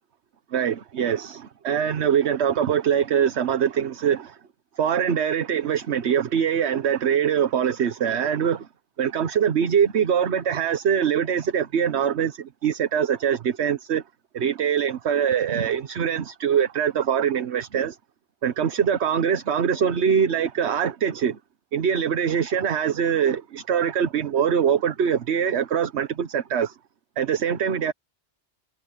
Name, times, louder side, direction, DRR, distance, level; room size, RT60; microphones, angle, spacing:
voice 1, 0.5-4.4 4.8-8.7 9.0-14.0 14.3-18.0 18.4-21.4 21.7-26.7 27.2-27.9, right 8 dB, 70° right, 1.2 m, -23 dB
omnidirectional pair, 1.2 m